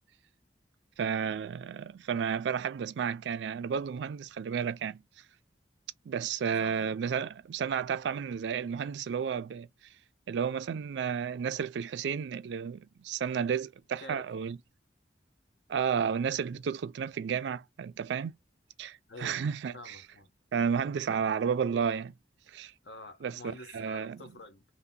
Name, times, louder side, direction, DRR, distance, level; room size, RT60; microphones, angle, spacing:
voice 1, 1.0-5.0 6.1-9.7 10.3-14.6 15.7-18.3 18.8-20.0 20.5-22.1 22.5-22.7 23.2-24.2, right 7 dB, 80° right, 0.3 m, -32 dB
voice 2, 14.0-14.3 19.1-19.4 19.7-20.3 20.8-21.2 22.8-24.6, left 3 dB, 75° left, 0.8 m, -48 dB
2.7 x 2.1 x 3.6 m
head